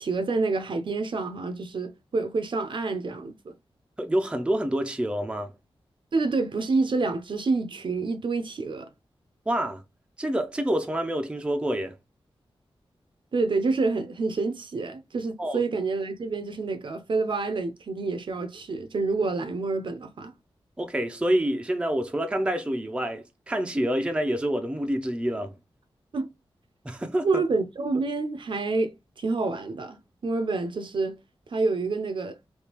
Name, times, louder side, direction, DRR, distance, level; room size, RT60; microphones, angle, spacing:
voice 1, 0.0-3.5 6.1-8.9 13.3-20.3 26.1-26.3 27.2-31.2 31.5-32.4, right 3 dB, 55° right, 0.6 m, -28 dB
voice 2, 4.0-5.5 9.5-9.8 10.2-12.0 15.4-15.6 20.8-25.5 26.8-27.4, right 1 dB, 10° right, 0.5 m, -27 dB
3.5 x 2.8 x 2.9 m
wide cardioid pair, 120°, 10 cm